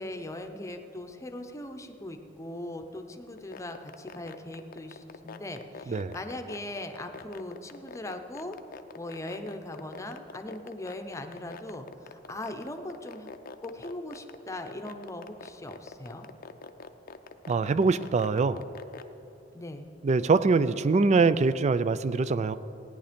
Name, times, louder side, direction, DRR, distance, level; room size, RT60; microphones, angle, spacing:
voice 1, 0.0-8.6 9.0-13.3 13.6-16.3 19.5-19.9, left 1 dB, 15° left, 6 dB, 0.8 m, -39 dB
sound 1, 3.4-19.0, left 5 dB, 50° left, 0.6 m, -43 dB
voice 2, 17.5-18.6 20.0-22.5, right 4 dB, 35° right, 15 dB, 0.4 m, -23 dB
16.5 x 9.9 x 5.2 m, 2.9 s
head